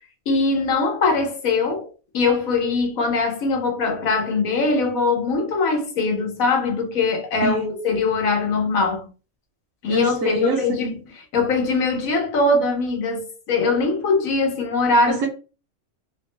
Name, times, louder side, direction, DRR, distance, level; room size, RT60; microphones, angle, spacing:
voice 1, 0.3-9.1 9.8-11.0 11.3-15.3, left 3 dB, 90° left, 1.3 m, -21 dB
voice 2, 7.4-7.7 9.9-11.0 15.1-15.3, right 2 dB, 75° right, 1.3 m, -25 dB
3.6 x 2.2 x 3.0 m
omnidirectional pair, 1.4 m